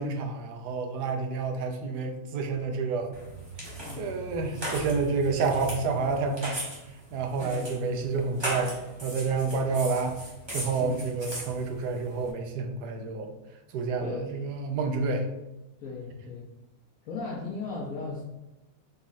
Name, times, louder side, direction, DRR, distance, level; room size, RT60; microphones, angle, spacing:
voice 1, 0.0-3.2 4.0-6.6 7.1-8.7 9.0-10.1 10.5-13.3 13.7-15.3, right 4 dB, 85° right, 4 dB, 1.2 m, -29 dB
sound 1, 3.1-12.3, right 1 dB, 20° right, 0.8 m, -38 dB
voice 2, 15.8-16.4 17.1-18.2, left 4 dB, 65° left, -3 dB, 1.0 m, -36 dB
4.0 x 2.4 x 4.0 m, 0.96 s
omnidirectional pair, 1.7 m